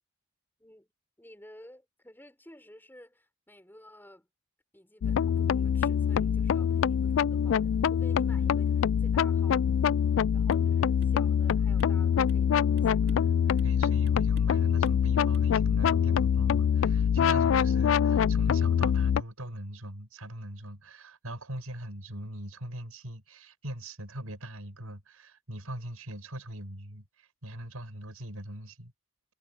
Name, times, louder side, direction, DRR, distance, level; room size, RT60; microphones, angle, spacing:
voice 1, 0.6-0.9 1.2-4.3 4.7-9.8 10.3-13.6, left 1 dB, 10° left, 6.7 m, -53 dB
sound 1, 5.0-19.2, left 8 dB, 60° left, 0.3 m, -24 dB
sound 2, 10.5-10.7 11.0-11.2 11.5-12.5 12.8-13.3 13.6-13.8 14.1-14.6 14.9-15.1 15.3-15.5, right 1 dB, 50° right, 3.3 m, -51 dB
voice 2, 13.6-28.9, right 1 dB, 90° right, 5.8 m, -41 dB
head